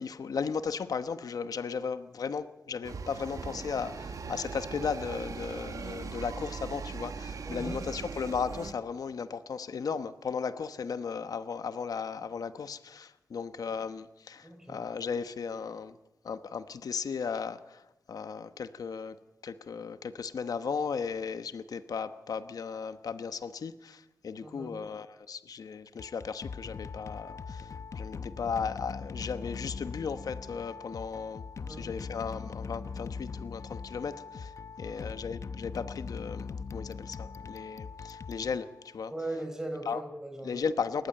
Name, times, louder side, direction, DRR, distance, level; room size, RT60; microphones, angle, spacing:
voice 1, 0.0-16.0 16.2-19.2 19.4-34.5 34.8-39.1 39.9-40.0 40.4-41.1, left 6 dB, 90° left, 11 dB, 1.0 m, -36 dB
sound 1, 2.8-8.7, right 5 dB, 70° right, 1.6 m, -40 dB
voice 2, 7.4-7.8 14.4-14.8 24.4-24.7 31.6-31.9 34.8-35.0 39.1-40.7, right 1 dB, 10° right, 6 dB, 4.8 m, -39 dB
sound 2, 25.9-39.1, left 5 dB, 60° left, 0.8 m, -41 dB
28.5 x 14.5 x 8.8 m, 0.94 s
wide cardioid pair, 165°, 6 cm